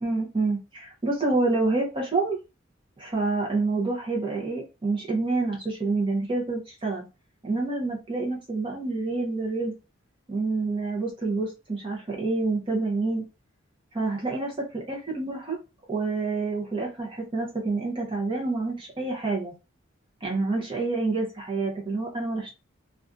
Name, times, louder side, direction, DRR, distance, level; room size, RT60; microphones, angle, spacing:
voice 1, 0.0-2.4 3.0-7.0 7.4-9.7 10.3-13.2 13.9-15.6 15.9-19.5 20.2-22.5, right 3 dB, 25° right, -2 dB, 0.6 m, -28 dB
2.5 x 2.3 x 2.3 m, 0.29 s
head